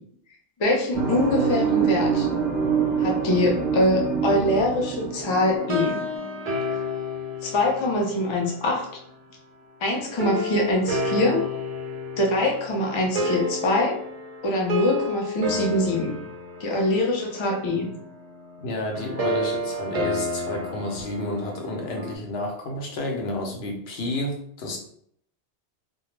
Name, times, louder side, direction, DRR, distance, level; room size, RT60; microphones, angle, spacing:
voice 1, 0.6-2.3 3.0-6.0 7.4-8.9 9.8-11.4 12.2-14.0 14.4-16.1 16.6-17.9, left 1 dB, 45° left, -1 dB, 0.3 m, -23 dB
sound 1, 0.9-6.1, right 6 dB, 30° right, 0.7 m, -25 dB
sound 2, 5.6-8.9 10.2-22.2, left 1 dB, 55° right, 0.4 m, -31 dB
voice 2, 18.6-24.8, left 1 dB, 70° left, 1 dB, 0.8 m, -30 dB
2.2 x 2.1 x 3.0 m, 0.66 s
omnidirectional pair, 1.2 m